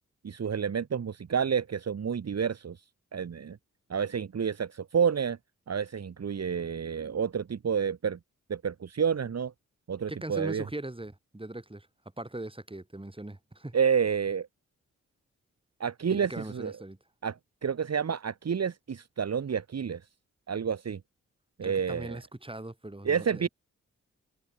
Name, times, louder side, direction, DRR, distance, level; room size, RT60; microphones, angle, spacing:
voice 1, 0.2-2.8 3.1-3.6 3.9-5.4 5.7-8.2 8.5-9.5 9.9-10.6 13.7-14.5 15.8-16.7 17.2-20.0 20.5-21.0 21.6-22.2 23.0-23.5, right 7 dB, 55° right, 1.4 m, -29 dB
voice 2, 10.1-11.9 12.2-13.8 16.1-17.0 21.6-23.5, right 1 dB, 15° right, 7.2 m, -40 dB
supercardioid pair, 45°, 32 cm